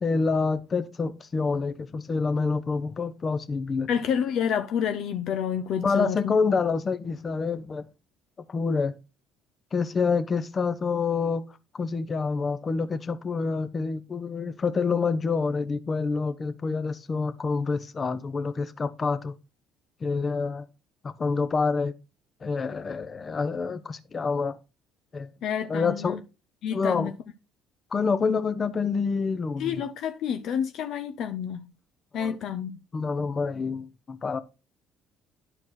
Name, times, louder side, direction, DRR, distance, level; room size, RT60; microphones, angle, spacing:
voice 1, 0.0-3.9 5.8-7.8 8.5-9.0 9.7-11.4 11.7-19.3 20.0-20.7 21.0-21.9 22.4-24.6 25.1-25.3 25.7-26.2 26.7-27.1 27.9-29.8 32.2-32.4 32.9-34.4, left 4 dB, 35° left, 0.8 m, -27 dB
voice 2, 3.9-6.3 25.4-26.2 26.6-27.1 29.6-31.7 32.1-32.8, left 8 dB, 65° left, 0.5 m, -29 dB
11.0 x 4.4 x 4.1 m
supercardioid pair, 70°, 0 cm